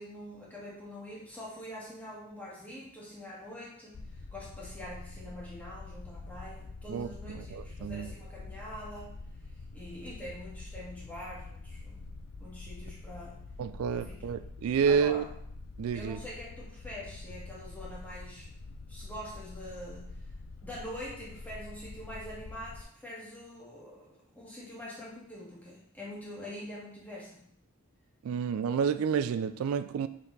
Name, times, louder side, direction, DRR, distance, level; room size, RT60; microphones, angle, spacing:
voice 1, 0.0-4.0 4.3-9.1 9.7-12.0 12.4-13.4 13.9-14.3 14.9-15.3 15.9-18.5 18.9-20.1 20.6-27.4, left 1 dB, 10° left, -6 dB, 1.6 m, -44 dB
sound 1, 3.9-22.8, left 3 dB, 75° left, 0.5 m, -46 dB
voice 2, 7.3-8.1 13.6-15.2 15.8-16.2 28.2-30.1, right 6 dB, 85° right, 12 dB, 0.3 m, -29 dB
5.8 x 4.1 x 3.9 m, 0.67 s
head